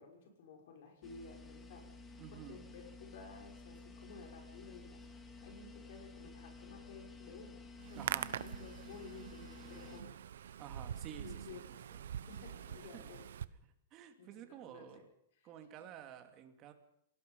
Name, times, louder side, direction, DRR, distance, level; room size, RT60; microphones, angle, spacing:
voice 1, 0.0-8.0 8.4-10.2 11.2-11.7 12.3-13.3 14.2-15.0 15.3-15.5 15.8-15.9, left 4 dB, 60° left, 3 dB, 6.0 m, -54 dB
sound 1, 1.0-10.0, left 3 dB, 10° left, 2.3 m, -53 dB
voice 2, 2.2-2.6 7.9-8.3 10.6-11.6 12.9-13.1 13.9-15.1 15.4-16.7, right 10 dB, 30° right, 6 dB, 2.6 m, -51 dB
Hands, 7.8-13.4, right 9 dB, 80° right, 1.0 m, -44 dB
27.5 x 18.5 x 5.5 m, 0.73 s
supercardioid pair, 155°, 0 cm